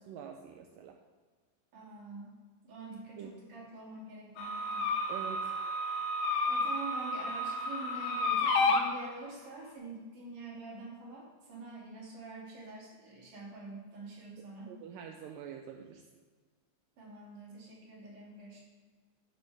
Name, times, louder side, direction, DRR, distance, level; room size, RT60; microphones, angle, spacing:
voice 1, 0.1-1.0 3.2-3.3 5.1-5.5 14.7-16.0, right 8 dB, 80° right, 3 dB, 2.0 m, -45 dB
voice 2, 1.7-2.4 2.6-4.9 6.5-14.7 17.0-18.6, right 2 dB, 55° right, -5 dB, 4.2 m, -46 dB
sound 1, 4.4-8.8, left 2 dB, 90° left, 3.2 m, -31 dB
13.0 x 9.5 x 3.6 m, 1.4 s
omnidirectional pair, 4.6 m